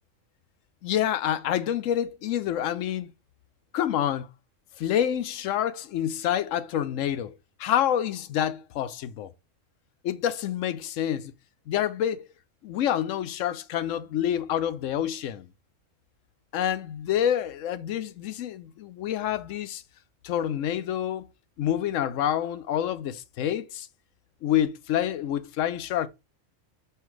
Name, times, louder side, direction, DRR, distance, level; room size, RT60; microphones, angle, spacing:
voice 1, 0.8-3.1 3.7-4.3 4.8-7.3 7.6-9.3 10.0-11.3 11.7-12.3 12.6-15.5 16.5-19.8 20.2-21.2 21.6-23.9 24.4-26.1, left 10 dB, 80° left, 1.0 m, -27 dB
5.7 x 5.7 x 3.1 m
omnidirectional pair, 1.3 m